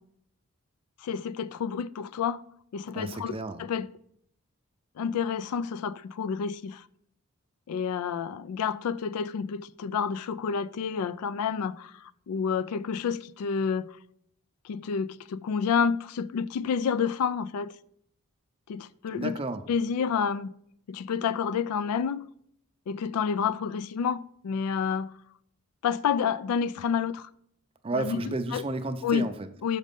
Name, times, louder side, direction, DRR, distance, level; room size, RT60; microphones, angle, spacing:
voice 1, 1.0-2.4 2.7-3.9 5.0-6.9 7.7-14.0 14.6-17.7 18.7-19.3 19.7-20.5 20.9-22.2 22.9-25.1 25.8-27.3 27.9-28.2 28.5-28.6 29.0-29.3 29.6-29.8, left 6 dB, 80° left, 0.3 m, -29 dB
voice 2, 2.9-3.6 19.1-19.6 27.8-29.5, right 2 dB, 25° right, 0.5 m, -32 dB
6.4 x 5.2 x 5.2 m
head